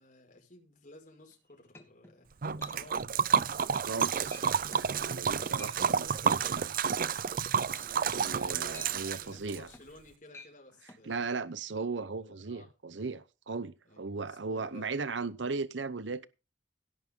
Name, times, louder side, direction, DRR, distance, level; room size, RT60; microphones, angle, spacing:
voice 1, 0.0-2.3 2.7-3.5 5.3-5.8 7.5-11.2 12.1-12.7 13.9-14.9, left 2 dB, 45° left, 5.2 m, -54 dB
sound 1, 1.3-1.4 1.7-2.2 2.6-2.8 3.2-3.5 3.9-4.0 4.3-4.5 4.7-4.9 5.4-5.8 6.1-10.0 10.3-10.5 10.9-11.0, left 2 dB, 15° left, 2.7 m, -51 dB
Liquid, 2.4-9.6, right 7 dB, 50° right, 0.5 m, -30 dB
voice 2, 3.9-4.4 4.7-7.0 8.1-9.7 11.0-16.3, right 4 dB, 75° right, 0.8 m, -37 dB
17.5 x 9.4 x 3.8 m
head